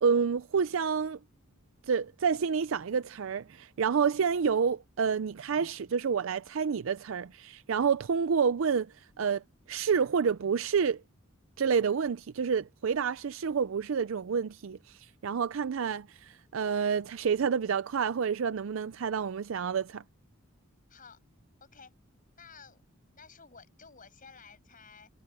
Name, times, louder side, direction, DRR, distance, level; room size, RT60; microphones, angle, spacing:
voice 1, 0.0-1.2 1.9-9.4 9.7-11.0 11.6-20.0, right 6 dB, 65° right, 0.4 m, -29 dB
voice 2, 20.9-21.2 21.6-21.9 22.4-22.8 23.1-25.1, left 5 dB, 40° left, 7.0 m, -53 dB
head